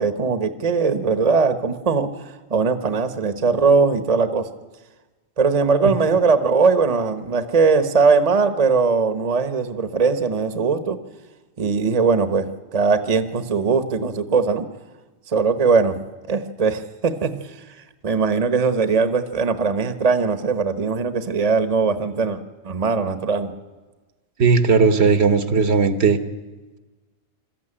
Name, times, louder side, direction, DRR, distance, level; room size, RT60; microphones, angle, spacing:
voice 1, 0.0-4.5 5.4-11.0 11.6-12.5 12.7-14.7 15.3-15.9 16.3-17.6 18.0-22.4 22.6-23.5, right 4 dB, 35° right, 11 dB, 1.1 m, -20 dB
voice 2, 24.4-26.2, right 5 dB, 70° right, 10 dB, 1.4 m, -16 dB
21.5 x 13.5 x 9.9 m, 1.2 s
omnidirectional pair, 1.2 m